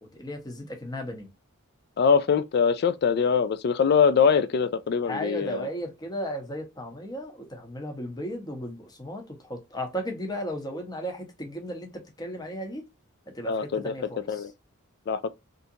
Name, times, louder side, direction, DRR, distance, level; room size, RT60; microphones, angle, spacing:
voice 1, 0.0-1.3 5.0-11.9 12.2-12.8 13.3-14.4, equal, 20° left, 0.9 m, -35 dB
voice 2, 2.0-5.7 13.5-13.9 14.3-14.5 15.1-15.3, left 6 dB, 50° left, 0.3 m, -23 dB
3.5 x 2.6 x 2.7 m
head